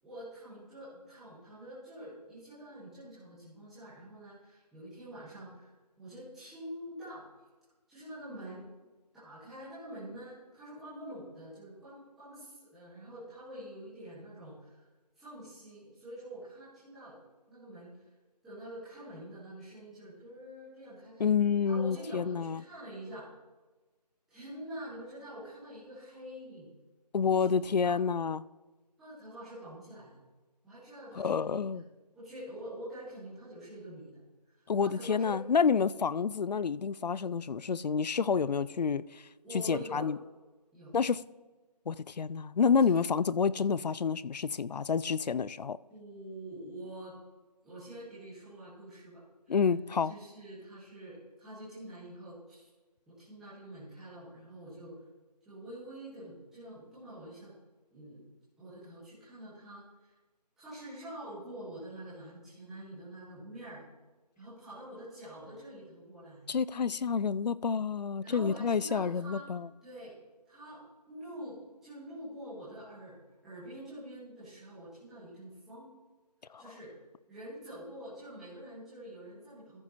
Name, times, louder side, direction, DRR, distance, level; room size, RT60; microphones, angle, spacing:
voice 1, 0.0-5.7 6.0-7.2 7.9-8.7 9.1-14.9 15.1-17.2 17.5-17.9 18.4-21.3 21.6-23.3 24.3-26.7 27.3-27.9 29.0-30.2 30.6-31.8 32.1-35.4 39.4-40.1 40.7-40.9 42.8-42.9 45.9-47.1 47.6-49.2 49.4-49.6 50.0-52.7 53.1-55.0 55.4-57.5 57.9-58.2 58.6-60.1 60.6-63.8 64.4-66.5 68.2-69.5 69.8-70.1 70.4-71.6 71.8-73.2 73.4-75.9 76.6-77.0 77.3-79.8, right 1 dB, ahead, 1.4 m, -46 dB
voice 2, 21.2-22.6 27.1-28.5 31.2-31.8 34.7-39.2 39.5-40.2 40.9-41.2 41.9-45.8 49.5-50.1 66.5-69.7 76.5-76.6, left 6 dB, 80° left, 0.4 m, -29 dB
14.0 x 7.1 x 3.0 m
figure-of-eight pair, 170°, 21 cm